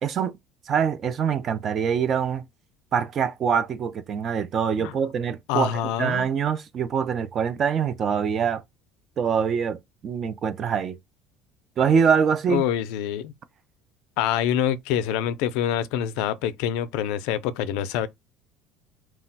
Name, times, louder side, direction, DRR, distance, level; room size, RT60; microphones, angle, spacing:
voice 1, 0.0-0.4 0.7-2.4 2.9-5.7 6.0-8.6 9.2-9.8 10.0-11.0 11.8-12.6, right 7 dB, 35° right, 0.4 m, -24 dB
voice 2, 5.5-6.3 12.5-13.3 14.2-18.1, left 10 dB, 80° left, 0.4 m, -26 dB
2.3 x 2.1 x 3.9 m
cardioid pair, 160°, 0 cm